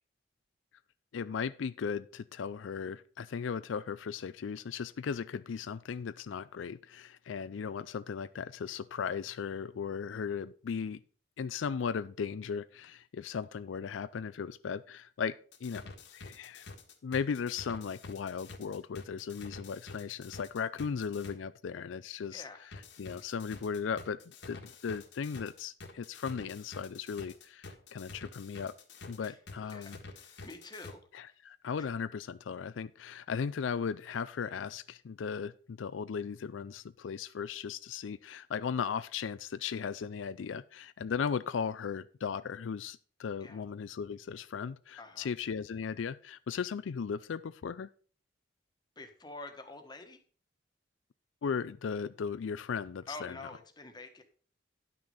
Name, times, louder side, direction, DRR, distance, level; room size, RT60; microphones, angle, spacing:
voice 1, 1.1-11.0 11.4-16.7 17.0-22.4 23.0-24.2 24.5-28.7 29.1-30.0 31.1-47.9 51.4-53.3, left 6 dB, 85° left, 0.4 m, -37 dB
sound 1, 15.5-21.3 22.7-30.9, left 3 dB, 70° left, 1.6 m, -48 dB
voice 2, 22.3-22.7 29.2-31.4 31.8-31.9 43.4-43.6 45.0-45.3 49.0-50.2 53.1-54.2, left 2 dB, 25° left, 1.4 m, -48 dB
10.5 x 6.2 x 5.5 m
head